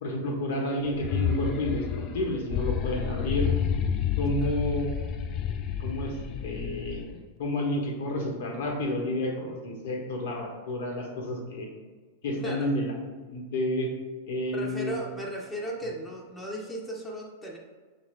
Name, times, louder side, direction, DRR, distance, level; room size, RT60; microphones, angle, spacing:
voice 1, 0.0-3.5 4.2-4.9 5.8-6.1 6.4-7.0 7.4-11.7 12.2-12.9 13.3-13.9 14.2-15.0, left 1 dB, 70° left, 0 dB, 1.0 m, -30 dB
sound 1, 0.9-7.2, left 8 dB, 40° left, 0.4 m, -30 dB
voice 2, 12.4-12.7 14.5-17.6, right 1 dB, 10° left, -2 dB, 0.8 m, -36 dB
5.6 x 2.6 x 3.1 m, 1.4 s
hypercardioid pair, 105°, 0 cm